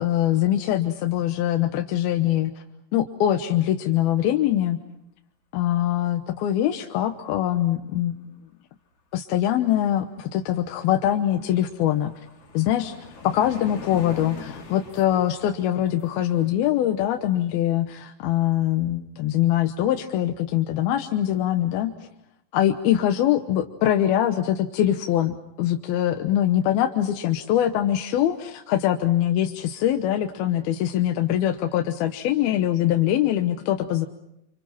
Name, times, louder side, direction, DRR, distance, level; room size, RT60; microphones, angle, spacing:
voice 1, 0.0-2.5 2.9-4.8 5.5-8.2 9.1-12.1 12.5-12.9 13.2-21.9 22.5-34.1, left 12 dB, 70° left, 6 dB, 2.8 m, -23 dB
sound 1, 10.4-10.5 10.8-16.5, left 5 dB, 40° left, 3.4 m, -42 dB
30.0 x 26.5 x 5.7 m, 0.82 s
omnidirectional pair, 4.8 m